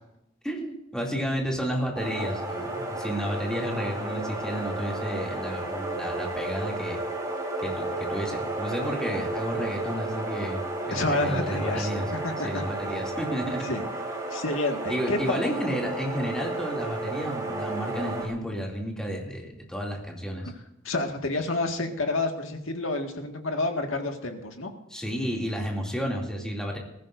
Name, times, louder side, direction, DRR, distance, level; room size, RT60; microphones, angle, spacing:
voice 1, 0.4-7.0 7.6-7.8 8.1-12.0 12.4-13.6 14.9-20.4 24.9-26.8, equal, 5° left, -1 dB, 2.7 m, -31 dB
sound 1, 1.9-18.3, right 2 dB, 20° right, 2.9 m, -32 dB
voice 2, 10.9-12.6 13.6-13.8 14.3-15.5 20.8-24.7, left 2 dB, 75° left, 4 dB, 1.9 m, -29 dB
20.0 x 14.5 x 2.7 m, 0.84 s
head